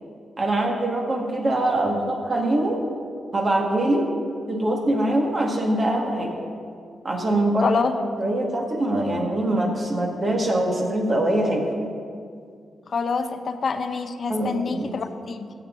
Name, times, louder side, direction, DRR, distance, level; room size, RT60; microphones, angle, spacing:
voice 1, 0.4-2.8 3.3-4.1 4.5-6.3 7.0-7.8 8.2-11.7 14.3-14.9, right 1 dB, 40° right, 0 dB, 1.9 m, -23 dB
voice 2, 7.6-7.9 12.9-15.5, left 5 dB, 55° left, 9 dB, 0.6 m, -26 dB
16.0 x 7.3 x 3.9 m, 2.3 s
cardioid pair, 85°, 0 cm